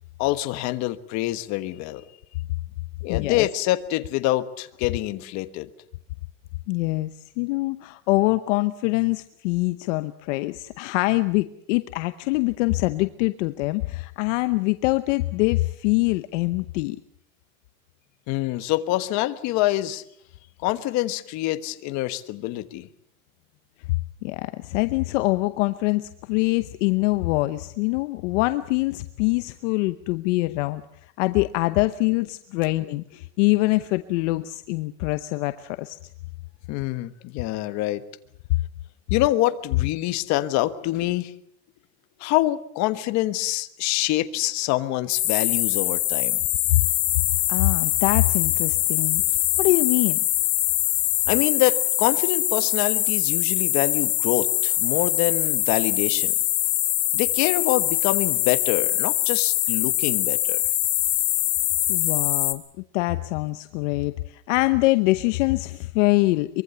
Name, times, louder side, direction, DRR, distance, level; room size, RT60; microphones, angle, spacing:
voice 1, 0.2-2.0 3.0-5.7 18.3-20.0 20.6-22.9 36.7-38.0 39.1-41.3 42.2-46.4 51.3-56.3 57.1-60.6, left 16 dB, 40° left, 11 dB, 1.3 m, -25 dB
voice 2, 3.1-3.5 6.7-17.0 24.2-30.8 31.2-36.0 47.5-49.2 49.6-50.2 61.9-62.6 62.9-66.6, left 21 dB, 55° left, 11 dB, 1.0 m, -24 dB
sound 1, 45.1-62.5, left 15 dB, 85° left, 2.7 m, -23 dB
24.0 x 23.0 x 7.0 m, 0.69 s
supercardioid pair, 155°, 44 cm